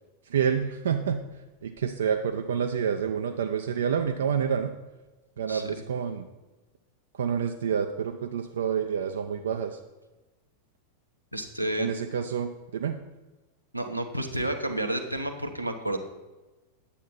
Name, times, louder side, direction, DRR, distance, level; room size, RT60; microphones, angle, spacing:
voice 1, 0.3-1.2 1.6-4.7 5.4-6.2 7.2-9.8 11.8-13.0, right 7 dB, 65° right, 5 dB, 0.5 m, -28 dB
voice 2, 11.3-11.9 13.7-16.0, right 1 dB, 90° right, 4 dB, 1.0 m, -30 dB
10.0 x 8.2 x 4.3 m, 1.1 s
figure-of-eight pair, 90°, 0 cm